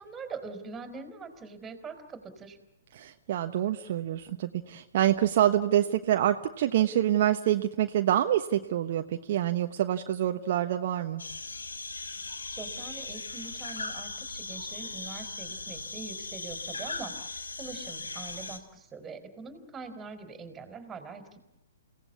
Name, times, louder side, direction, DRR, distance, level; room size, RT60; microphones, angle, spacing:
voice 1, 0.0-2.6 12.5-21.4, right 4 dB, 15° right, 7 dB, 4.2 m, -43 dB
voice 2, 2.9-11.2, right 12 dB, 50° right, 6 dB, 1.2 m, -26 dB
sound 1, 11.2-18.6, left 3 dB, 80° left, 2.4 m, -38 dB
29.5 x 18.0 x 8.4 m, 1.0 s
figure-of-eight pair, 120°, 0 cm